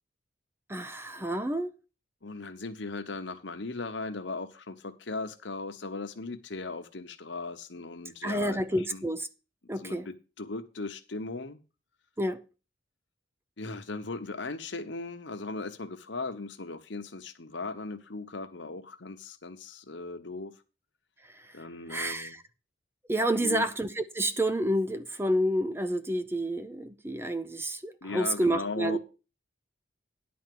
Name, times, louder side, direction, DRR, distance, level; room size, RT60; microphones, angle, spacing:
voice 1, 0.7-1.7 8.2-9.3 9.7-10.1 12.2-12.4 21.3-21.5 21.9-22.4 23.1-29.0, right 1 dB, 10° right, 0.5 m, -29 dB
voice 2, 2.2-8.6 8.9-9.0 9.8-11.6 13.6-20.5 21.5-22.4 23.3-23.6 28.0-29.0, left 3 dB, 65° left, 1.1 m, -38 dB
10.5 x 4.3 x 7.7 m
head